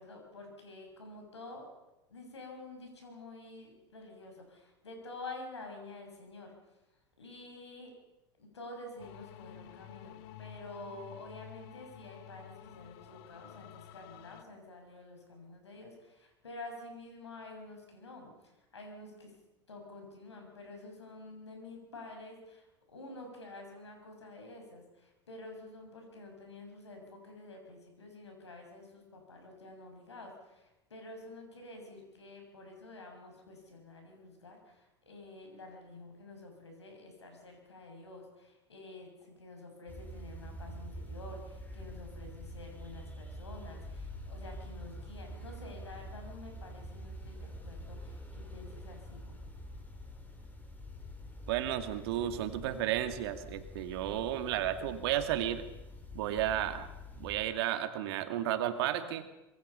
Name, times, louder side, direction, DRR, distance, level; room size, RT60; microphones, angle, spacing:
voice 1, 0.0-1.6 2.1-6.5 7.2-7.9 8.4-19.3 19.7-49.5, left 2 dB, 90° left, 3 dB, 6.8 m, -49 dB
sound 1, 9.0-14.4, left 10 dB, 60° left, 1.2 m, -51 dB
sound 2, 39.9-57.4, equal, 10° left, 4.8 m, -46 dB
voice 2, 51.5-55.7 56.1-56.9 57.2-59.2, right 12 dB, 65° right, 7 dB, 2.4 m, -33 dB
25.5 x 21.5 x 5.7 m, 0.99 s
hypercardioid pair, 85°, 14 cm